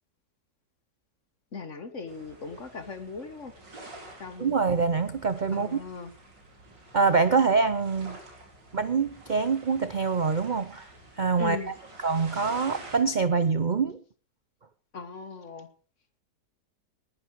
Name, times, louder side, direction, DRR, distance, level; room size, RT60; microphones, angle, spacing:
voice 1, 1.5-3.5 4.2-4.5 5.5-6.1 11.4-11.7 14.9-15.7, left 4 dB, 45° left, 1.8 m, -38 dB
sound 1, 2.1-13.0, right 2 dB, 80° right, 4.6 m, -49 dB
voice 2, 4.4-5.8 6.9-8.2 8.7-10.9 11.2-11.6 12.0-14.0, right 5 dB, 60° right, 0.4 m, -25 dB
19.5 x 11.0 x 4.7 m
omnidirectional pair, 1.9 m